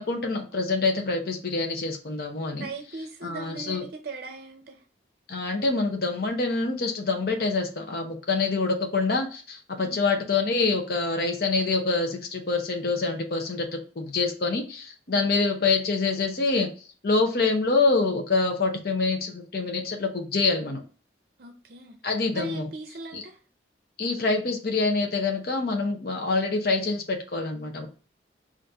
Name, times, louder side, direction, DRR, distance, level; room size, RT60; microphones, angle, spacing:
voice 1, 0.0-2.7 3.2-3.8 5.3-16.7 17.0-20.8 22.0-22.7 23.1-23.2 24.0-27.9, left 3 dB, 55° left, 3 dB, 0.7 m, -26 dB
voice 2, 2.6-4.8 9.8-10.0 15.1-15.3 21.4-22.0 22.3-23.4, right 3 dB, 55° right, 4 dB, 0.5 m, -39 dB
4.0 x 2.5 x 3.4 m, 0.37 s
head